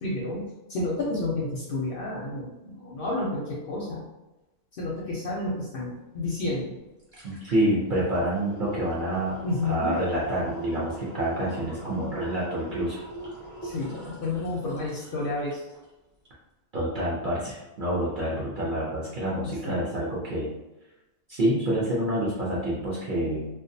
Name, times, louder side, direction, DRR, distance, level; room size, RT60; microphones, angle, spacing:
voice 1, 0.0-4.0 4.7-6.7 9.4-9.9 13.6-15.6 19.4-19.8, left 2 dB, 60° left, -4 dB, 0.6 m, -30 dB
sound 1, 6.4-6.5 6.8-15.9 16.2-16.3, right 1 dB, 20° right, 0.8 m, -41 dB
voice 2, 7.2-9.3 9.6-13.0 16.7-20.5 21.3-23.5, right 1 dB, 60° right, -6 dB, 0.5 m, -27 dB
2.3 x 2.2 x 2.6 m, 1.0 s
omnidirectional pair, 1.3 m